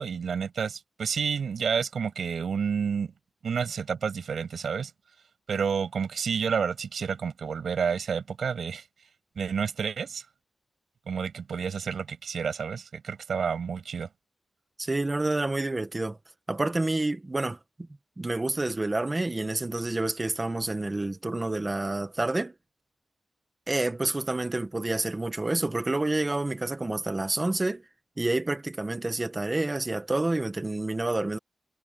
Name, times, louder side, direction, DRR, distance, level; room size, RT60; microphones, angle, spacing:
voice 1, 0.0-3.1 3.4-4.9 5.5-8.8 9.4-10.2 11.1-14.1, right 6 dB, 65° right, 7.5 m, -30 dB
voice 2, 14.8-16.2 16.5-17.9 18.2-22.5 23.7-27.8 28.2-31.4, right 2 dB, 20° right, 1.6 m, -28 dB
wide cardioid pair, 170°, 0 cm